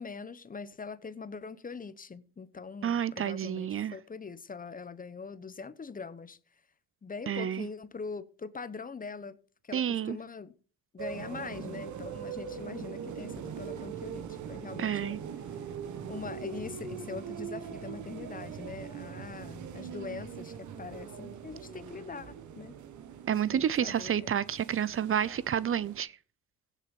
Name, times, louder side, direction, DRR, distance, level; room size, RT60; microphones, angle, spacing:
voice 1, 0.0-6.4 7.0-9.4 9.6-10.5 10.9-15.2 16.1-22.7 23.5-24.4, left 5 dB, 30° left, 1.0 m, -42 dB
voice 2, 2.8-3.9 7.3-7.7 9.7-10.2 14.8-15.2 23.3-26.1, right 9 dB, 45° right, 0.6 m, -30 dB
sound 1, 11.0-26.0, right 7 dB, 75° right, 1.5 m, -42 dB
16.5 x 7.5 x 5.3 m
cardioid pair, 90°, 30 cm